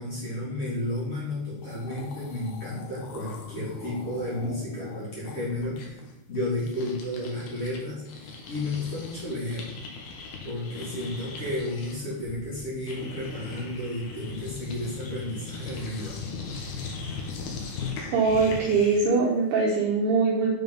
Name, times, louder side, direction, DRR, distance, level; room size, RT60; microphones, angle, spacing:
voice 1, 0.0-6.0 6.3-9.7 10.4-16.2, left 1 dB, 35° left, -8 dB, 3.1 m, -32 dB
sound 1, 1.3-1.4 1.6-7.8 8.1-19.2, left 4 dB, 70° left, 2.6 m, -39 dB
voice 2, 18.1-20.5, right 4 dB, 75° right, -2 dB, 2.5 m, -22 dB
7.7 x 5.9 x 5.4 m, 0.89 s
omnidirectional pair, 5.7 m